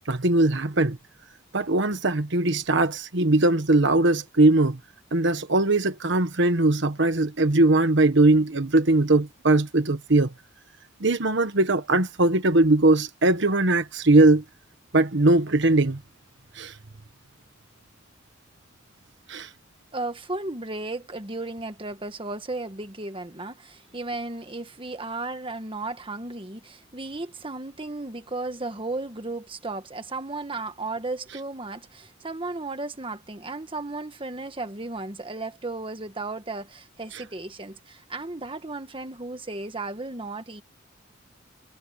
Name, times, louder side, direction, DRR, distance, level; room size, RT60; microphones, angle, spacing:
voice 1, 0.1-1.0 1.5-4.8 5.1-10.3 11.0-14.4 14.9-16.0 16.6-16.7 19.3-19.5 37.1-37.2, right 2 dB, 65° right, 1.3 m, -20 dB
voice 2, 19.9-40.6, right 2 dB, 25° right, 1.6 m, -34 dB
head